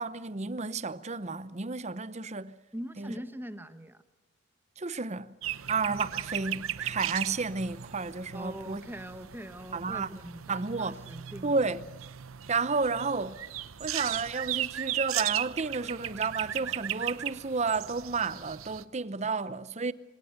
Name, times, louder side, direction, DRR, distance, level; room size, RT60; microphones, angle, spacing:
voice 1, 0.0-2.6 3.0-3.1 4.8-5.3 5.7-8.8 9.7-10.1 10.5-10.9 11.4-11.8 12.5-13.4 13.8-19.9, right 4 dB, 35° right, 0.8 m, -31 dB
voice 2, 2.7-4.0 8.3-11.6, equal, 10° right, 1.2 m, -42 dB
sound 1, 5.4-18.8, right 12 dB, 85° right, 0.8 m, -37 dB
26.0 x 17.5 x 8.0 m
head